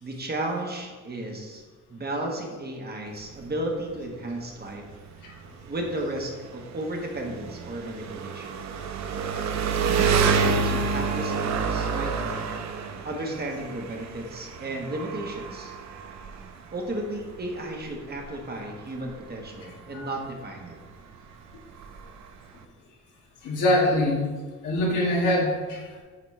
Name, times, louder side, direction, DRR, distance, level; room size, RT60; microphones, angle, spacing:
voice 1, 0.0-1.6 1.9-4.9 5.7-8.6 9.9-12.5 13.0-15.7 16.7-20.8, right 1 dB, 30° right, 1 dB, 1.3 m, -34 dB
Engine, 3.1-22.7, right 5 dB, 65° right, 0.7 m, -30 dB
voice 2, 23.4-24.2 24.6-26.0, left 1 dB, 90° left, -3 dB, 1.8 m, -24 dB
8.4 x 4.1 x 3.2 m, 1.5 s
cardioid pair, 90°, 30 cm